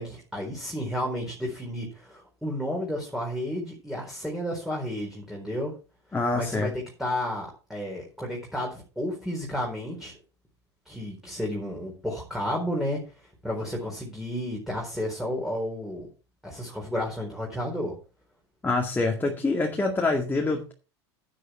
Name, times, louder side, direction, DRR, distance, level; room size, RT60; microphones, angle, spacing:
voice 1, 0.0-5.7 6.3-10.1 10.9-16.1 16.4-18.0, left 1 dB, ahead, -1 dB, 4.3 m, -32 dB
voice 2, 6.1-6.7 18.6-20.7, left 3 dB, 15° left, 1 dB, 2.1 m, -25 dB
9.9 x 9.6 x 4.5 m, 0.34 s
hypercardioid pair, 90°, 14 cm